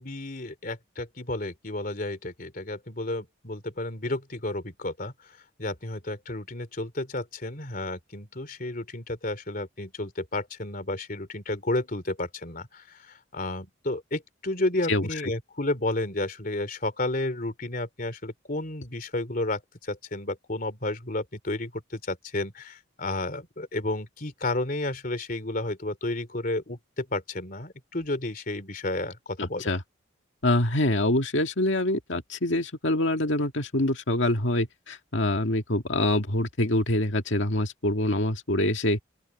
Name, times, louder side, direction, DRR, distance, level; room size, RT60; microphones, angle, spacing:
voice 1, 0.0-29.7, left 2 dB, 45° left, 3.2 m, -32 dB
voice 2, 29.4-29.8 30.4-39.0, left 1 dB, 70° left, 2.0 m, -25 dB
open air
head